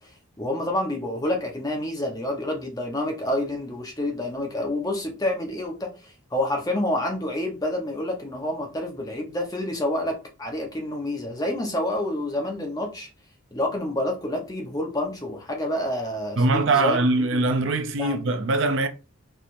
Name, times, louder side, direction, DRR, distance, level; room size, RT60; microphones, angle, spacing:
voice 1, 0.4-13.1 13.5-17.6 18.0-18.1, left 1 dB, 20° left, 0.9 m, -28 dB
voice 2, 16.4-18.9, right 2 dB, 65° right, 0.5 m, -22 dB
4.5 x 3.3 x 2.6 m
head